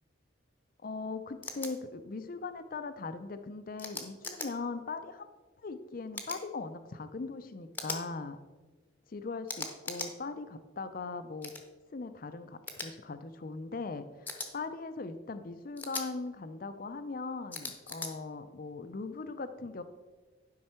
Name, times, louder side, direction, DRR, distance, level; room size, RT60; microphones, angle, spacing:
voice 1, 0.8-5.3 5.6-8.4 9.1-11.5 11.9-19.8, left 3 dB, 45° left, 10 dB, 0.5 m, -40 dB
sound 1, 1.4-1.7 3.8-4.5 6.1-6.4 7.7-8.0 9.5-10.1 11.4-11.6 12.7-12.9 14.3-14.5 15.8-16.1 17.5-18.1, left 3 dB, 10° left, 0.8 m, -39 dB
11.0 x 5.5 x 4.4 m, 1.3 s
head